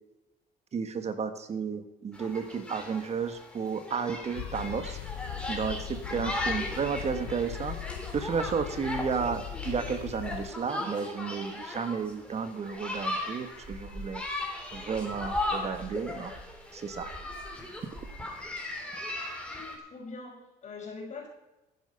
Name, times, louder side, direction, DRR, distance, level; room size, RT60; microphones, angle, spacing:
voice 1, 0.7-5.0 5.5-7.8 8.1-14.2 14.7-16.3 16.7-17.1, right 6 dB, 40° right, 10 dB, 1.4 m, -32 dB
sound 1, 2.1-19.8, left 2 dB, 5° left, 3.6 m, -37 dB
sound 2, 4.3-10.5, left 12 dB, 85° left, 1.0 m, -39 dB
voice 2, 19.5-21.3, left 4 dB, 40° left, -6 dB, 4.7 m, -43 dB
13.5 x 10.5 x 5.6 m, 0.98 s
cardioid pair, 110°, 17 cm